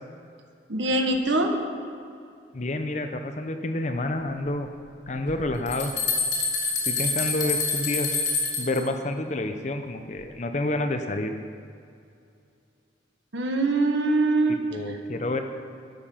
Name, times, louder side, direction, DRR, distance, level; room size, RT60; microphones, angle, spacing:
voice 1, 0.7-1.5 13.3-14.6, right 2 dB, 85° right, 3 dB, 1.4 m, -23 dB
voice 2, 2.5-4.7 5.1-5.9 6.8-8.1 8.6-11.3 14.7-15.4, left 2 dB, 40° left, 7 dB, 0.7 m, -29 dB
sound 1, 5.3-5.4 5.7-8.8, left 4 dB, 70° left, 2.8 m, -26 dB
12.0 x 8.8 x 5.7 m, 2.5 s
head